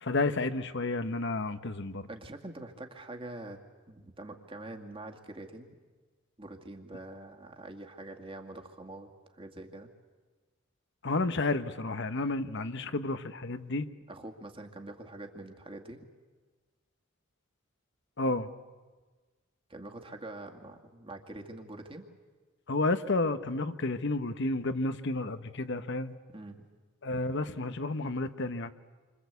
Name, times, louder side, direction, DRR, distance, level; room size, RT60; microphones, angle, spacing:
voice 1, 0.0-2.1 11.0-13.9 18.2-18.5 22.7-26.1 27.0-28.7, left 2 dB, 60° left, 11 dB, 1.1 m, -31 dB
voice 2, 2.1-3.6 3.9-5.7 6.4-9.1 9.4-9.9 14.1-16.0 19.7-22.1 26.3-26.6, right 2 dB, 25° right, 3 dB, 2.2 m, -44 dB
28.5 x 25.0 x 8.3 m, 1.3 s
head